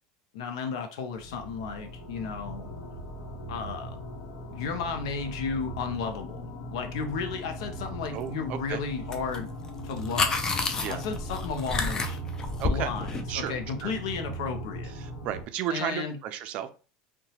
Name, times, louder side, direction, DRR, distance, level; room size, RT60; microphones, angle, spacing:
voice 1, 0.3-2.7 3.5-4.0 4.5-9.5 9.8-10.4 10.9-12.2 12.7-14.9 15.7-16.2, left 5 dB, 90° left, 6 dB, 0.6 m, -33 dB
sound 1, 1.1-15.4, right 1 dB, 65° left, 0.9 m, -39 dB
voice 2, 8.1-8.8 10.8-11.0 12.6-12.9 13.3-13.6 13.8-13.9 15.0-16.7, right 10 dB, 50° right, 10 dB, 0.4 m, -33 dB
sound 2, 9.1-9.4 9.6-13.2, left 3 dB, 20° left, 0.4 m, -29 dB
2.8 x 2.2 x 2.8 m, 0.34 s
supercardioid pair, 130°, 3 cm